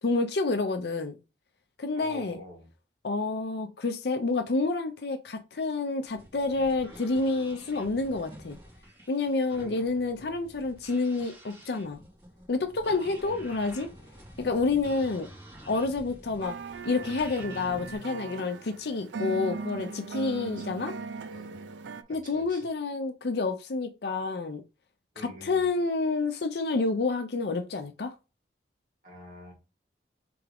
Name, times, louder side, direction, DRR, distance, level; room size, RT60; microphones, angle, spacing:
voice 1, 0.0-1.2 1.8-2.4 3.0-8.6 9.1-12.0 12.5-13.9 14.4-15.3 15.7-16.6 16.8-20.9 22.1-24.6 25.4-28.1, left 3 dB, 60° left, 0.6 m, -29 dB
voice 2, 1.9-2.7 9.6-10.4 20.4-20.7 21.3-21.7 22.1-22.7 25.1-25.7 29.0-29.5, left 1 dB, 45° right, 2.2 m, -47 dB
sound 1, 6.1-18.0, equal, 25° right, 2.0 m, -49 dB
sound 2, 16.4-22.0, right 4 dB, 80° right, 0.4 m, -38 dB
3.6 x 3.4 x 3.4 m
head